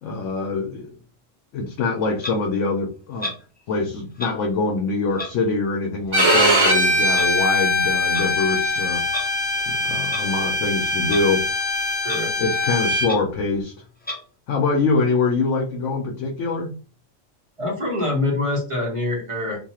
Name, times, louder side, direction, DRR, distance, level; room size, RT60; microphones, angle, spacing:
voice 1, 0.0-1.0 1.5-3.3 3.7-9.0 9.7-11.4 12.4-13.7 14.5-16.8, left 3 dB, 75° left, 2 dB, 0.9 m, -24 dB
Clock, 2.2-2.4 3.2-3.4 4.2-4.3 5.1-5.3 6.1-6.3 7.1-7.3 8.0-8.3 9.1-9.3 10.1-10.3 11.0-11.2 11.6-11.7 12.0-12.2 12.6-12.7 13.0-13.2 14.0-14.2, left 2 dB, 15° left, 0.3 m, -31 dB
Bowed string instrument, 6.1-13.1, left 1 dB, 50° right, 1.2 m, -21 dB
voice 2, 17.6-19.6, left 2 dB, 25° right, -2 dB, 1.0 m, -25 dB
2.5 x 2.3 x 2.9 m, 0.35 s
omnidirectional pair, 1.3 m